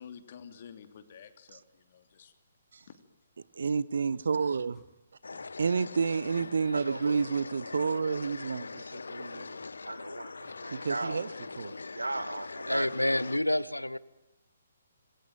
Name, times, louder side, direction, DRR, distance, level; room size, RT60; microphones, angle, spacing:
voice 1, 0.0-2.3 2.9-3.0, left 7 dB, 45° left, 3.0 m, -50 dB
voice 2, 3.5-4.8 5.6-9.5 10.7-11.3 11.6-11.8, right 5 dB, 60° right, 1.0 m, -30 dB
sound 1, 4.0-4.2 4.7-4.9 5.3-5.5 5.8-6.0 6.3-6.5 6.8-7.0 7.3-7.4 7.8-8.0 8.7-8.8 9.6-9.7 10.4-10.6 11.4-11.6 12.1-12.3 12.8-13.0, left 5 dB, 15° left, 7.3 m, -65 dB
sound 2, 5.2-13.4, left 4 dB, 65° left, 1.0 m, -42 dB
voice 3, 6.7-7.2 9.9-11.2 11.9-12.9, right 2 dB, 75° right, 1.7 m, -37 dB
voice 4, 12.7-14.0, left 1 dB, 85° left, 1.2 m, -28 dB
27.0 x 21.0 x 9.1 m
figure-of-eight pair, 130°, 0 cm